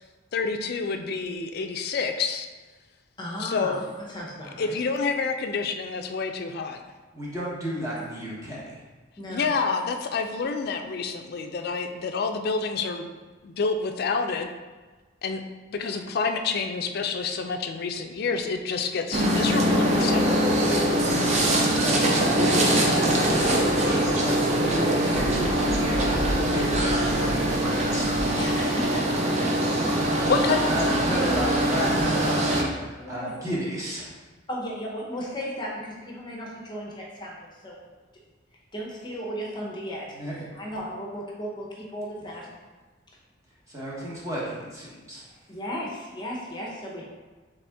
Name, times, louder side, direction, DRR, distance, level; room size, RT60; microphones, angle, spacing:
voice 1, 0.3-2.5 3.4-3.8 4.6-6.8 9.3-13.1 13.4-14.5 15.2-15.4 15.7-20.4 30.3-30.6, left 4 dB, 55° left, 6 dB, 0.4 m, -28 dB
voice 2, 3.2-3.8 4.1-4.8 9.2-9.5 23.9-24.0 28.4-29.0 29.4-29.5 33.0-33.5 34.5-37.7 38.7-40.1 40.5-42.5 45.5-47.0, equal, 25° left, -3 dB, 0.7 m, -35 dB
voice 3, 7.1-8.8 21.1-24.3 24.6-28.1 30.2-34.1 40.1-40.4 43.7-45.3, equal, 15° right, -6 dB, 1.1 m, -33 dB
sound 1, 19.1-32.6, right 1 dB, 35° right, 0.6 m, -23 dB
4.1 x 3.5 x 3.4 m, 1.3 s
head